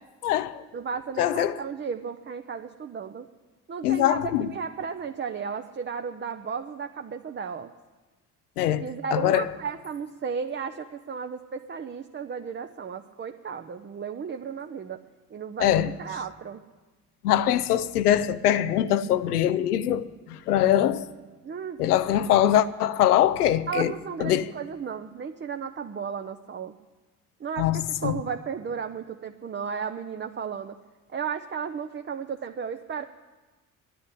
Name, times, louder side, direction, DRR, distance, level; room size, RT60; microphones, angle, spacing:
voice 1, 0.2-0.6 1.2-1.6 3.8-4.5 8.6-8.8 9.1-9.4 15.6-15.9 17.2-21.0 21.8-23.9 24.2-24.5 27.6-28.2, left 11 dB, 80° left, 0.6 m, -23 dB
voice 2, 0.7-3.3 3.7-7.7 8.8-15.0 15.3-16.6 21.4-21.8 22.1-22.2 23.7-26.7 27.4-30.8 31.1-33.0, right 6 dB, 25° right, 0.7 m, -34 dB
10.5 x 9.6 x 9.9 m
figure-of-eight pair, 50°, 45 cm